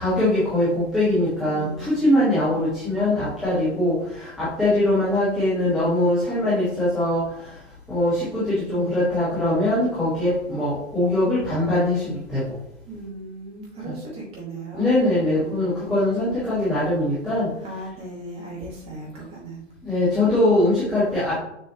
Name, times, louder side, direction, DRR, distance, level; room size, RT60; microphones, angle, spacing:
voice 1, 0.0-7.2 7.9-12.4 13.8-13.9 14.7-17.5 19.8-21.3, left 1 dB, ahead, -15 dB, 0.3 m, -22 dB
voice 2, 1.5-2.6 12.9-14.9 15.4-16.4 17.6-19.6, right 1 dB, 15° right, -3 dB, 2.2 m, -37 dB
6.8 x 6.0 x 3.0 m, 0.77 s
figure-of-eight pair, 125°, 36 cm